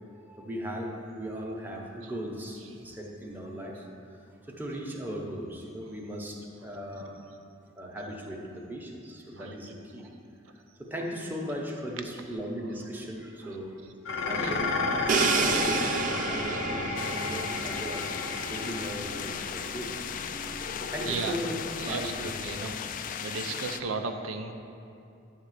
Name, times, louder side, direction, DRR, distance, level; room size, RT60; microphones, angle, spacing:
voice 1, 0.3-3.9 4.3-7.2 7.8-10.1 10.8-13.8 14.2-18.1 18.5-19.9 20.8-22.6, equal, 10° right, -1 dB, 0.8 m, -38 dB
Dishes pots and pans, 14.0-22.9, left 3 dB, 80° left, 0.8 m, -33 dB
Crash cymbal, 15.1-18.9, right 5 dB, 40° right, 0.4 m, -30 dB
sound 1, 17.0-23.8, left 8 dB, 40° left, 0.3 m, -37 dB
voice 2, 21.0-21.3 21.8-22.8 23.2-24.5, right 4 dB, 85° right, 5 dB, 0.6 m, -35 dB
9.8 x 3.6 x 6.6 m, 2.6 s
head